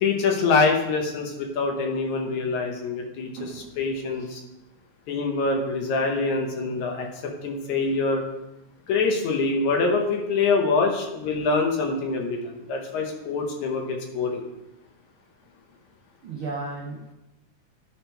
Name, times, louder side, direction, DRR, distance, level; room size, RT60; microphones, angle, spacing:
voice 1, 0.0-3.3 3.8-4.4 5.1-8.2 8.9-12.4 12.7-14.4, left 4 dB, 70° left, 2 dB, 2.2 m, -25 dB
voice 2, 3.4-3.8 4.2-4.3 16.2-17.1, right 3 dB, 80° right, -1 dB, 1.2 m, -35 dB
10.5 x 3.6 x 4.4 m, 0.92 s
omnidirectional pair, 3.6 m